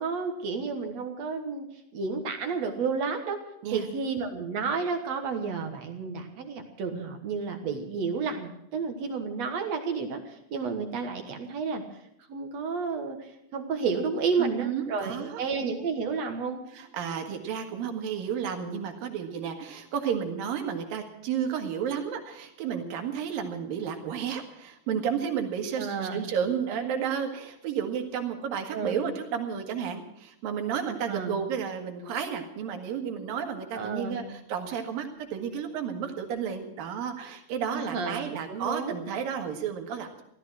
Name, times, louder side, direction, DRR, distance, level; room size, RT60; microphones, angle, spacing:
voice 1, 0.0-1.7 1.9-3.4 3.7-11.8 12.3-16.6 25.8-26.2 28.7-29.0 31.1-31.4 33.7-34.3 37.7-38.9, right 5 dB, 60° right, 5 dB, 2.2 m, -31 dB
voice 2, 14.4-15.4 16.7-40.2, right 7 dB, 80° right, 4 dB, 3.4 m, -32 dB
15.5 x 13.5 x 6.2 m, 0.79 s
omnidirectional pair, 4.0 m